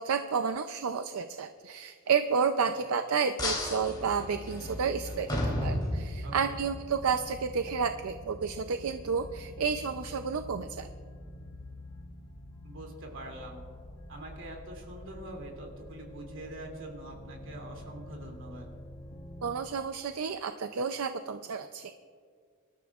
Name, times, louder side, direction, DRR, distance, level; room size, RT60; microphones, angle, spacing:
voice 1, 0.0-10.9 19.4-21.9, right 6 dB, 80° right, 8 dB, 0.5 m, -31 dB
sound 1, 3.4-6.6, left 1 dB, 20° left, 3.2 m, -33 dB
sound 2, 5.1-19.5, left 1 dB, 60° left, 1.3 m, -46 dB
voice 2, 6.2-6.6 12.6-13.7 14.1-18.7, right 1 dB, 60° right, 1 dB, 2.7 m, -44 dB
25.5 x 13.0 x 2.4 m, 2.1 s
head